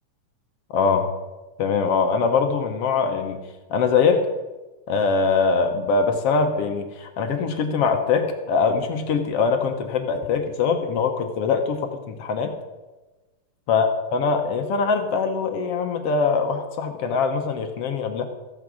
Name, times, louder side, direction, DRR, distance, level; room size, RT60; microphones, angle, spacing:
voice 1, 0.7-1.1 1.6-3.4 3.7-4.2 4.9-11.8 12.1-12.5 13.7-18.3, left 5 dB, 65° left, 6 dB, 1.5 m, -22 dB
14.5 x 8.9 x 6.3 m, 1.2 s
omnidirectional pair, 3.8 m